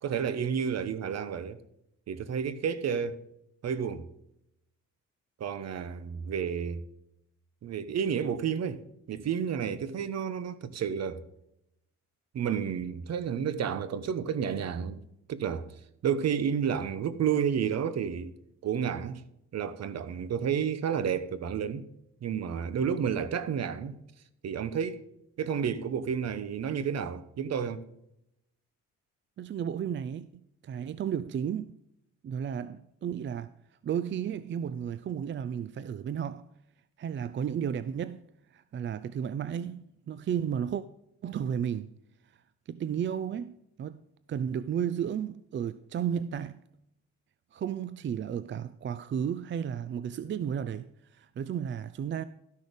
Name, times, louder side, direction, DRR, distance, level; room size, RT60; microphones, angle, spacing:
voice 1, 0.0-1.6 2.1-3.2 3.6-4.1 5.4-6.8 7.6-8.8 9.1-11.2 12.3-15.0 15.3-15.7 16.0-18.3 18.6-19.2 19.5-21.9 22.2-24.0 24.4-25.0 25.4-27.8, right 7 dB, 60° right, 1.0 m, -31 dB
voice 2, 29.4-31.8 32.2-33.5 33.8-36.5 37.0-38.3 38.5-40.8 41.2-41.9 42.3-43.5 43.8-44.0 44.3-46.6 47.5-52.2, right 8 dB, 40° right, 0.4 m, -33 dB
13.0 x 6.2 x 5.2 m
cardioid pair, 90°, 30 cm